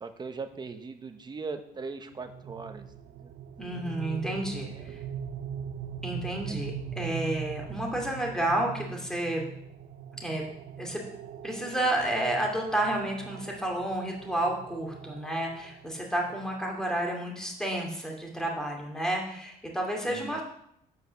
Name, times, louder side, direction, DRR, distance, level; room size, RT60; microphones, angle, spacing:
voice 1, 0.0-2.9 3.2-3.3 4.7-5.0 6.5-6.6 20.1-20.4, right 4 dB, 25° right, 7 dB, 1.0 m, -39 dB
sound 1, 2.1-17.0, right 8 dB, 60° right, 0.6 m, -41 dB
voice 2, 3.6-5.0 6.0-9.4 10.1-10.4 10.8-11.0 11.4-20.4, right 1 dB, 5° left, 0 dB, 2.4 m, -31 dB
8.1 x 5.3 x 6.5 m, 0.73 s
cardioid pair, 110°, 17 cm